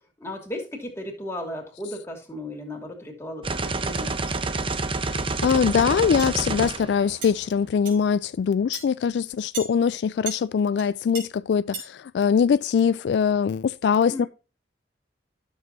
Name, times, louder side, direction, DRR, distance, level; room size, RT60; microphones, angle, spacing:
voice 1, 0.2-4.2 14.1-14.3, left 1 dB, 15° left, 2.7 m, -35 dB
sound 1, 3.4-7.6, right 3 dB, 30° right, 0.7 m, -28 dB
voice 2, 5.1-14.3, left 6 dB, 70° left, 0.3 m, -22 dB
sound 2, 6.2-6.3 7.2-7.3 7.8-8.0 8.7-8.8 9.5-9.7 10.3-10.4 10.8-10.9 11.1-11.2 11.7-11.9, right 4 dB, 80° right, 4.2 m, -34 dB
12.5 x 7.1 x 2.6 m
head